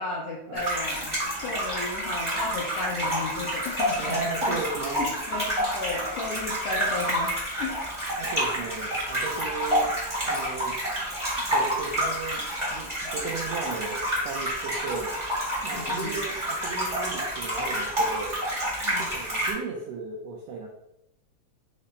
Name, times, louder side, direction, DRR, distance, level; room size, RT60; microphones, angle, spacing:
voice 1, 0.0-4.5 5.0-8.0 15.7-16.1 18.8-19.1, left 3 dB, 80° left, -4 dB, 1.4 m, -34 dB
sound 1, 0.5-19.5, equal, 50° right, 0.3 m, -29 dB
voice 2, 3.9-5.1 8.2-9.9 10.2-10.8 11.5-15.1 15.6-18.3 19.0-20.7, right 4 dB, 85° right, -1 dB, 1.5 m, -35 dB
5.3 x 2.1 x 3.9 m, 0.85 s
omnidirectional pair, 3.5 m